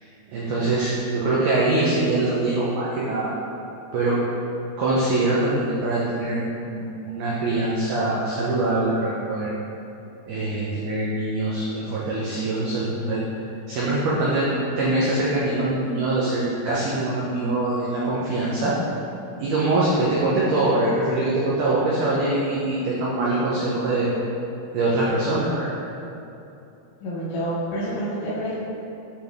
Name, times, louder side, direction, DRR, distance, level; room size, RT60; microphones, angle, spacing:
voice 1, 0.3-3.3 3.9-4.2 4.8-9.5 10.3-13.2 13.7-14.5 14.8-18.7 19.4-24.1 24.7-25.7, right 2 dB, 90° right, -7 dB, 1.8 m, -23 dB
voice 2, 27.0-28.5, equal, 75° left, -10 dB, 2.4 m, -28 dB
8.4 x 3.5 x 3.4 m, 2.8 s
omnidirectional pair, 4.7 m